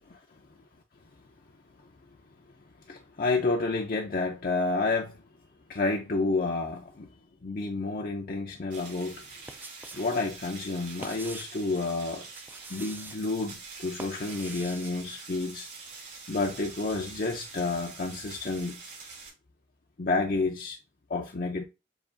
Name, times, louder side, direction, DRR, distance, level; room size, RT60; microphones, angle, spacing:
voice 1, 2.9-5.2 5.7-7.1 7.4-9.2 9.9-12.3 12.7-15.7 16.3-18.8 20.0-20.8 21.1-21.6, left 3 dB, 50° left, 0.5 m, -30 dB
sound 1, 8.7-19.3, right 4 dB, 70° right, 3.0 m, -45 dB
sound 2, 9.2-10.1 10.4-11.6 12.2-13.2 13.7-14.9, right 2 dB, 10° right, 0.3 m, -45 dB
7.1 x 2.9 x 2.5 m
head